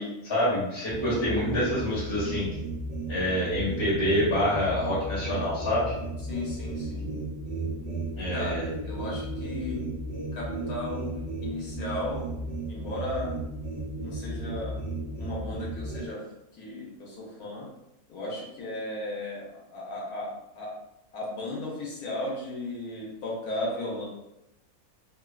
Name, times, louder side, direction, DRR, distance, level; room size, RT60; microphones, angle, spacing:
voice 1, 0.0-2.5 3.1-5.9 8.2-8.7, left 1 dB, 20° left, -8 dB, 1.0 m, -27 dB
sound 1, 0.9-16.1, right 2 dB, 50° right, 0.7 m, -34 dB
voice 2, 1.0-1.3 6.2-7.0 8.3-9.8 10.3-12.4 12.7-13.3 14.0-14.8 15.2-16.2 16.5-17.7 18.1-20.3 20.5-20.7 21.1-24.1, left 1 dB, 75° left, -5 dB, 1.3 m, -35 dB
3.0 x 2.3 x 2.3 m, 0.88 s
omnidirectional pair, 1.6 m